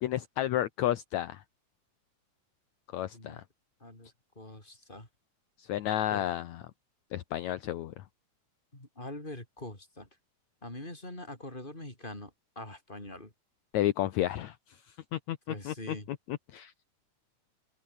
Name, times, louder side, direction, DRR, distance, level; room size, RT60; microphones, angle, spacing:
voice 1, 0.0-1.4 2.9-3.4 5.6-6.6 7.1-8.0 13.7-16.7, left 13 dB, 70° left, 2.2 m, -32 dB
voice 2, 3.8-4.1 4.4-5.1 6.1-6.2 8.7-10.1 10.6-13.3 15.5-16.1, left 1 dB, 15° left, 6.2 m, -43 dB
open air
omnidirectional pair, 3.6 m